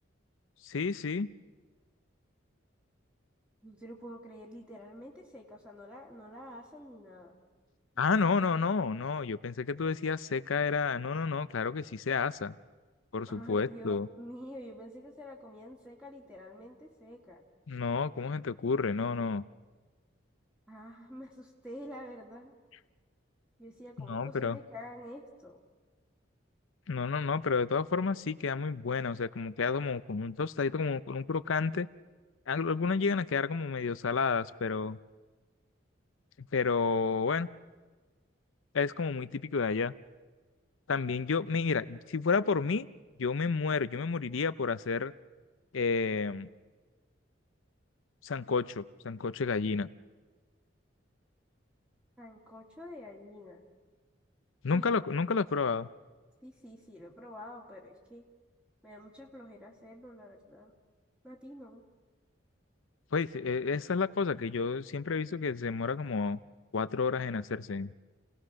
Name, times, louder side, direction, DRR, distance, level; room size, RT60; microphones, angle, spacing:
voice 1, 0.6-1.3 8.0-12.5 13.1-14.1 17.7-19.4 24.0-24.6 26.9-31.9 32.5-35.0 36.4-37.5 38.7-39.9 40.9-42.9 43.2-45.1 45.7-46.5 48.2-49.9 54.6-55.9 63.1-66.4 66.7-67.9, left 4 dB, 85° left, 14 dB, 0.6 m, -30 dB
voice 2, 3.6-7.4 13.3-17.4 20.7-22.5 23.6-25.6 52.2-53.6 54.7-54.9 56.4-58.2 58.8-60.7 61.2-61.8, equal, 5° right, -2 dB, 2.8 m, -48 dB
29.0 x 18.0 x 6.4 m, 1.3 s
head